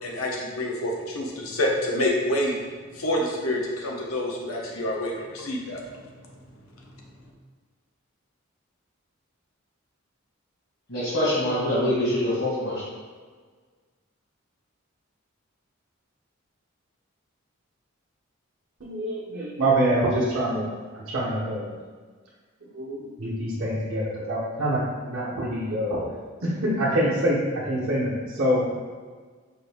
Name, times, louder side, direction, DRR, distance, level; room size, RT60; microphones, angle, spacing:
voice 1, 0.0-2.5 2.9-5.8 6.7-6.8, left 1 dB, 85° left, -1 dB, 0.8 m, -27 dB
voice 2, 10.9-12.7, left 1 dB, 65° left, -10 dB, 1.4 m, -24 dB
voice 3, 18.8-20.7 20.9-21.7 22.7-26.1 26.4-28.7, right 1 dB, 60° right, -8 dB, 0.8 m, -25 dB
4.7 x 2.6 x 3.4 m, 1.5 s
head